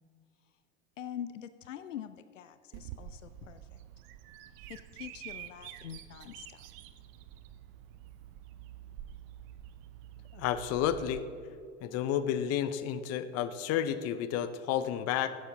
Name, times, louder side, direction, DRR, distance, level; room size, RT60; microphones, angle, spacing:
voice 1, 1.0-3.8 4.7-6.6, left 10 dB, 80° left, 12 dB, 0.5 m, -44 dB
Bird vocalization bird call bird song, 2.7-11.2, right 11 dB, 50° right, 0.7 m, -48 dB
voice 2, 10.3-11.2 11.8-15.4, left 10 dB, 40° left, 12 dB, 0.7 m, -31 dB
15.5 x 7.1 x 3.8 m, 2.4 s
figure-of-eight pair, 75°, 37 cm